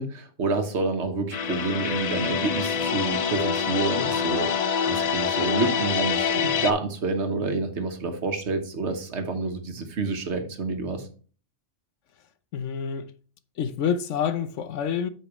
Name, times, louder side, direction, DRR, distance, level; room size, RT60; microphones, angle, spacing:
voice 1, 0.0-11.1, right 3 dB, 70° right, 1.5 m, -28 dB
sound 1, 1.3-6.7, left 7 dB, 50° left, 0.5 m, -26 dB
voice 2, 12.5-13.1 13.6-15.1, left 7 dB, 80° left, 1.1 m, -27 dB
8.6 x 5.9 x 3.1 m
omnidirectional pair, 1.2 m